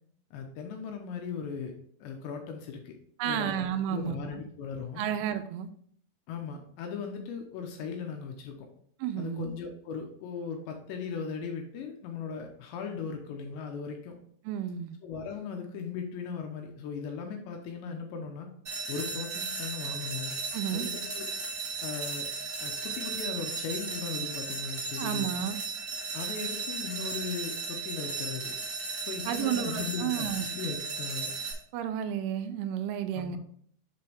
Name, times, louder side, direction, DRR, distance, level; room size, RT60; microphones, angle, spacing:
voice 1, 0.3-1.7 2.0-3.0 3.2-3.6 3.9-5.1 6.3-8.7 9.2-14.2 15.0-18.5 18.9-20.3 20.7-21.3 21.8-22.3 22.6-25.3 26.1-28.5 29.0-31.3 33.1-33.4, left 6 dB, 75° left, 3 dB, 2.8 m, -38 dB
voice 2, 3.2-4.4 5.0-5.7 9.0-9.4 14.5-14.9 20.5-20.9 25.0-25.6 29.3-30.5 31.7-33.4, right 9 dB, 85° right, 8 dB, 3.0 m, -32 dB
sound 1, 18.6-31.5, right 4 dB, 55° right, 1.1 m, -35 dB
7.0 x 5.6 x 3.4 m, 0.62 s
omnidirectional pair, 5.6 m